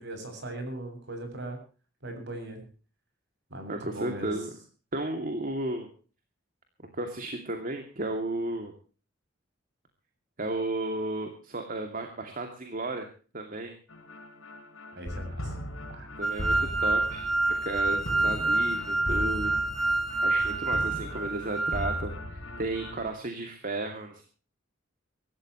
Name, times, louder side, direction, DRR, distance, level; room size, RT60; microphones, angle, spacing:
voice 1, 0.0-1.6 2.0-2.6 3.5-4.3 14.9-15.5 15.9-16.1 18.1-18.6 20.7-21.1, right 1 dB, 60° right, 5 dB, 7.5 m, -40 dB
voice 2, 3.7-4.5 4.9-5.9 6.9-8.7 10.4-13.1 13.3-13.7 16.2-17.3 17.6-19.6 20.2-24.2, right 2 dB, 45° right, 5 dB, 2.6 m, -33 dB
sound 1, 13.9-23.1, left 1 dB, 80° left, 5.4 m, -38 dB
sound 2, 16.2-22.0, right 2 dB, ahead, 1.6 m, -27 dB
24.0 x 14.0 x 3.1 m, 0.37 s
head